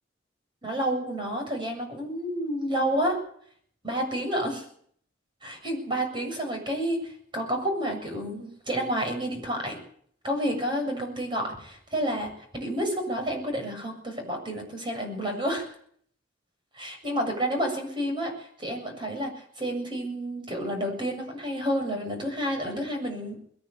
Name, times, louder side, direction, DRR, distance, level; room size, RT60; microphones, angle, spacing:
voice 1, 0.6-3.2 3.8-4.6 5.4-9.8 10.2-15.7 16.8-23.4, equal, 25° right, 3 dB, 7.4 m, -30 dB
21.0 x 18.5 x 8.5 m, 0.62 s
head